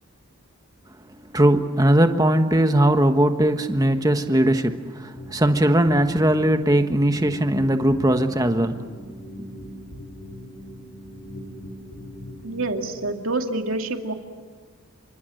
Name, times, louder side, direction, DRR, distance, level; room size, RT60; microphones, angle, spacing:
voice 1, 1.3-8.8, right 1 dB, 15° right, 7 dB, 1.3 m, -19 dB
sound 1, 5.1-13.1, equal, 60° left, 5.7 m, -40 dB
voice 2, 12.4-14.1, right 2 dB, 75° right, 4 dB, 2.4 m, -27 dB
28.5 x 25.0 x 7.9 m, 1.5 s
head